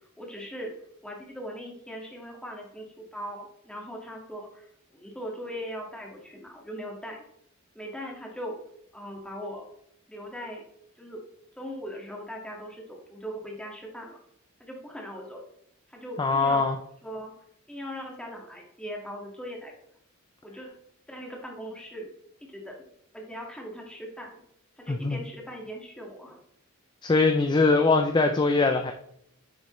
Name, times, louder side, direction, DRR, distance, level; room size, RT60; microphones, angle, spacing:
voice 1, 0.2-0.7 1.0-4.7 4.9-7.2 7.8-8.6 8.9-9.7 10.1-10.6 11.0-11.2 11.6-14.2 14.6-15.5 15.9-16.7 17.0-17.3 17.7-19.7 20.4-20.7 21.1-22.1 22.4-22.8 23.1-24.3 24.8-26.4, equal, 5° left, -1 dB, 1.8 m, -39 dB
voice 2, 16.2-16.8 24.9-25.2 27.0-28.9, left 3 dB, 20° left, 6 dB, 0.4 m, -22 dB
9.6 x 6.9 x 3.2 m, 0.72 s
head